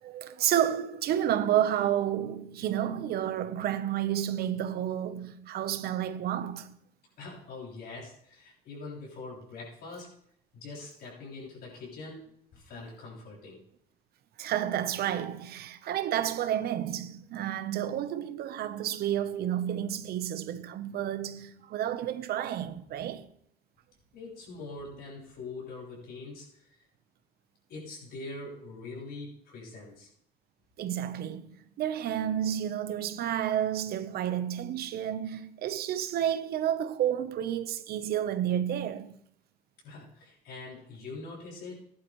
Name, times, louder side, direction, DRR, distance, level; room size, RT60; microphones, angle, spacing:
voice 1, 0.0-6.7 14.4-23.3 30.8-39.2, right 10 dB, 65° right, 1.0 m, -30 dB
voice 2, 7.2-10.1 10.5-13.6 24.1-26.7 27.7-30.1 39.8-41.8, left 3 dB, 70° left, 6.5 m, -43 dB
15.5 x 11.0 x 3.2 m
cardioid pair, 110°, 17 cm